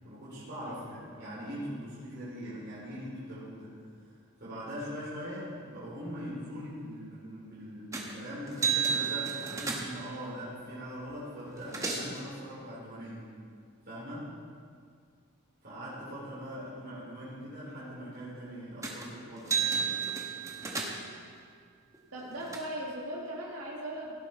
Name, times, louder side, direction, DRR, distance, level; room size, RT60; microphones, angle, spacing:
voice 1, 0.0-3.8 4.4-13.3 13.9-14.3 15.6-19.7, equal, 45° right, -9 dB, 3.5 m, -41 dB
sound 1, 7.9-8.2 8.5-10.1 11.1-11.2 11.4-12.2 18.8-19.1 19.4-21.2 21.9-22.6, right 6 dB, 15° right, 1.0 m, -32 dB
voice 2, 22.1-24.1, right 1 dB, 85° right, -4 dB, 1.8 m, -38 dB
16.5 x 7.7 x 4.4 m, 2.1 s
head